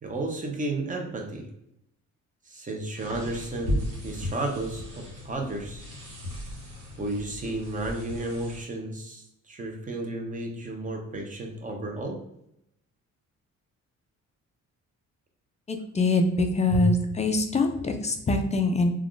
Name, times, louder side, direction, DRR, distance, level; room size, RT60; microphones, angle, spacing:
voice 1, 0.0-1.5 2.5-5.8 7.0-12.2 16.7-16.8, right 2 dB, 25° right, 2 dB, 0.6 m, -33 dB
sound 1, 2.9-8.6, left 1 dB, 90° right, 1.2 m, -35 dB
voice 2, 15.7-18.9, left 2 dB, 20° left, 5 dB, 0.3 m, -24 dB
3.4 x 2.3 x 2.4 m, 0.77 s
cardioid pair, 110°, 32 cm